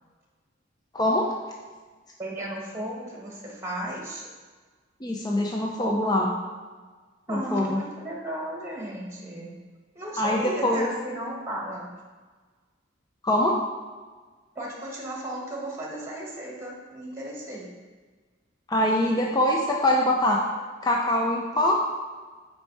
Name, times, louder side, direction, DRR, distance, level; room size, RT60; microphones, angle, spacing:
voice 1, 0.9-1.3 5.0-6.3 7.3-7.8 10.2-10.9 13.2-13.5 18.7-20.4 20.8-21.8, left 1 dB, 20° left, -1 dB, 0.5 m, -23 dB
voice 2, 2.2-4.3 5.8-6.2 7.3-9.5 9.9-11.8 14.5-17.7, right 1 dB, 15° right, -2 dB, 1.3 m, -35 dB
6.9 x 4.5 x 4.6 m, 1.4 s
head